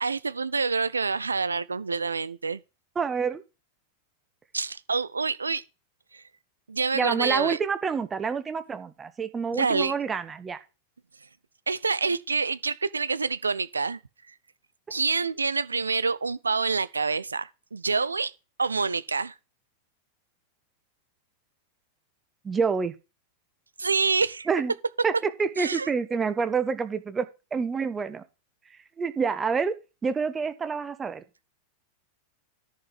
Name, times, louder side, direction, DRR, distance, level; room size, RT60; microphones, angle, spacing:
voice 1, 0.0-2.6 4.5-5.6 6.1-6.2 6.7-7.6 9.5-9.9 11.7-14.0 14.9-18.3 18.6-19.3 23.8-24.5 25.6-25.9, right 4 dB, 75° right, 0.6 m, -27 dB
voice 2, 3.0-3.4 6.9-10.6 22.4-22.9 24.5-24.7 25.0-27.3 27.5-28.2 29.0-29.7 30.0-31.2, right 5 dB, 20° right, 1.1 m, -27 dB
10.5 x 5.6 x 5.9 m
figure-of-eight pair, 90°, 0 cm